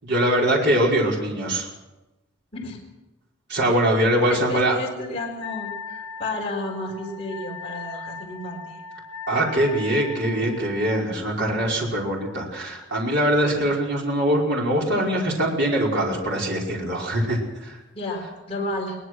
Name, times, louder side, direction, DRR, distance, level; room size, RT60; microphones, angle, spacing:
voice 1, 0.0-1.7 3.5-4.8 9.3-17.8, right 1 dB, 55° right, -2 dB, 5.1 m, -22 dB
voice 2, 4.2-8.8 17.9-19.0, left 2 dB, 30° left, -2 dB, 4.2 m, -32 dB
Wind instrument woodwind instrument, 5.4-11.0, left 5 dB, 80° left, 1.7 m, -38 dB
22.5 x 19.5 x 6.3 m, 1.0 s
head